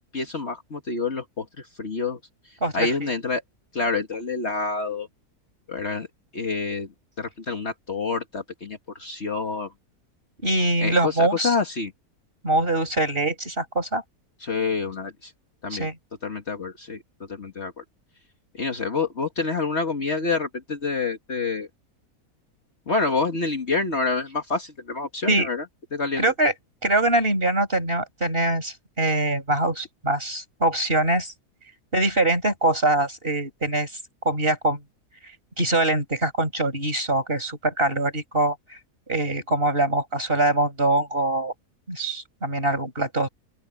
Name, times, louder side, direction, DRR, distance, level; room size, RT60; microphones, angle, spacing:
voice 1, 0.1-1.5 1.8-2.2 2.7-3.4 3.7-5.1 5.7-6.1 6.3-6.9 7.2-9.7 10.8-11.9 14.4-15.3 15.6-15.9 16.2-17.0 17.3-17.8 18.6-21.7 22.9-25.6 25.9-26.2, left 4 dB, 45° left, 2.0 m, -27 dB
voice 2, 2.6-3.1 10.4-11.6 12.4-14.0 15.7-16.0 25.3-25.5 26.2-26.5 26.8-31.3 31.9-34.0 34.3-34.8 35.6-38.8 39.1-41.5 41.9-43.3, right 2 dB, 35° right, 7.1 m, -23 dB
open air
omnidirectional pair, 1.6 m